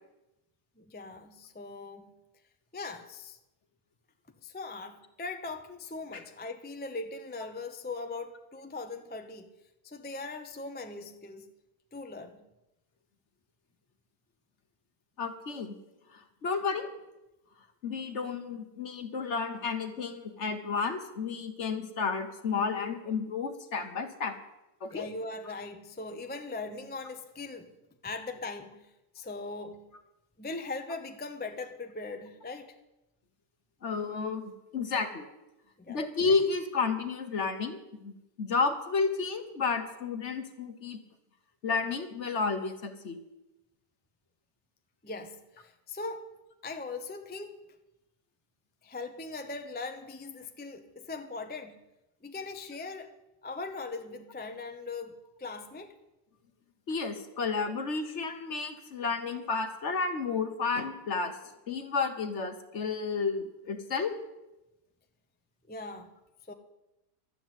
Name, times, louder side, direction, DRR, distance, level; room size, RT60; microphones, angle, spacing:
voice 1, 0.8-2.1 2.7-3.4 4.4-9.5 9.8-11.5 11.9-12.4 24.9-27.7 28.0-29.9 30.4-32.7 35.8-36.0 45.0-46.3 46.6-47.6 48.8-51.8 52.2-53.1 53.4-56.0 65.7-66.1 66.5-66.6, left 3 dB, 15° left, 6 dB, 0.4 m, -40 dB
voice 2, 15.2-15.7 16.1-16.9 17.8-24.4 24.8-25.1 33.8-35.2 35.9-38.1 38.4-41.0 41.6-43.2 56.9-61.4 61.7-64.2, left 4 dB, 45° left, 7 dB, 1.4 m, -31 dB
12.5 x 7.9 x 9.1 m, 0.95 s
omnidirectional pair, 1.8 m